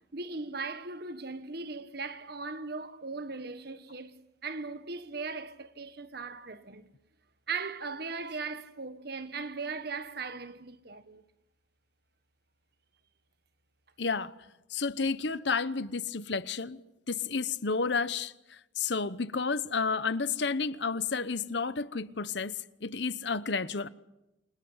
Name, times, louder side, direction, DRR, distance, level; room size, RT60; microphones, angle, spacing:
voice 1, 0.0-6.9 7.5-11.2, right 4 dB, 55° right, 1.5 m, -38 dB
voice 2, 14.0-14.3 14.7-16.8 17.1-23.9, left 4 dB, 65° left, 1.0 m, -31 dB
29.0 x 24.0 x 8.1 m
head